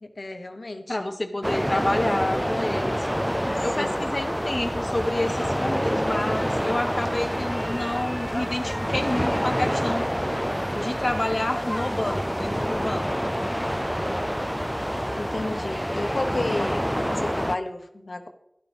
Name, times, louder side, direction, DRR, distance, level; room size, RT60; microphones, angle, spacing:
voice 1, 0.0-1.0 3.7-4.1 15.1-18.3, left 2 dB, 70° left, 7 dB, 1.0 m, -32 dB
voice 2, 0.9-3.1 3.6-10.1 10.8-13.0, left 1 dB, 40° left, 5 dB, 0.7 m, -29 dB
sound 1, 1.4-17.6, equal, ahead, 0.4 m, -27 dB
12.0 x 11.5 x 3.5 m, 0.79 s
wide cardioid pair, 50°, 0 cm